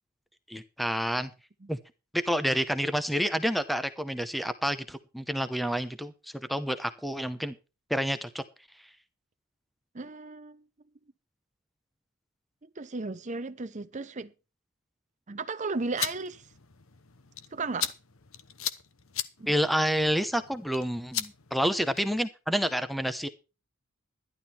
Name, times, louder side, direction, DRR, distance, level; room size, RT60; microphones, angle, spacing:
voice 1, 0.5-1.3 1.7-1.8 2.1-6.1 6.5-7.5 7.9-8.4 19.5-23.3, equal, ahead, 0.8 m, -28 dB
voice 2, 9.9-10.6 12.6-14.3 15.3-16.4 17.5-17.9 19.4-19.5, right 3 dB, 35° right, 0.7 m, -35 dB
sound 1, 15.7-22.3, left 10 dB, 70° left, 1.0 m, -38 dB
12.0 x 11.5 x 4.4 m
head